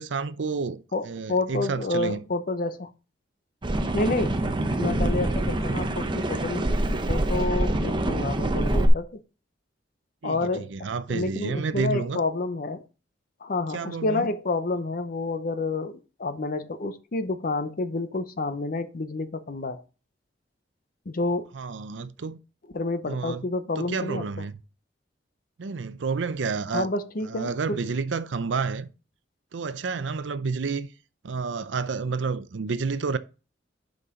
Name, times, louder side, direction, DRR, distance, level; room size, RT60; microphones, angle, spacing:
voice 1, 0.0-2.2 10.2-12.2 13.7-14.3 21.5-22.4 23.1-23.5 23.8-24.5 25.6-26.9 27.2-28.9 29.5-30.9 31.2-33.2, right 4 dB, 80° right, 0.5 m, -30 dB
voice 2, 0.9-2.9 3.9-4.4 4.8-6.8 7.1-9.2 10.2-12.8 13.4-19.8 21.1-21.5 22.7-24.2 26.7-27.8, left 2 dB, 50° left, 0.7 m, -29 dB
sound 1, 3.6-8.9, right 1 dB, 25° right, 0.7 m, -25 dB
6.8 x 5.4 x 3.7 m
head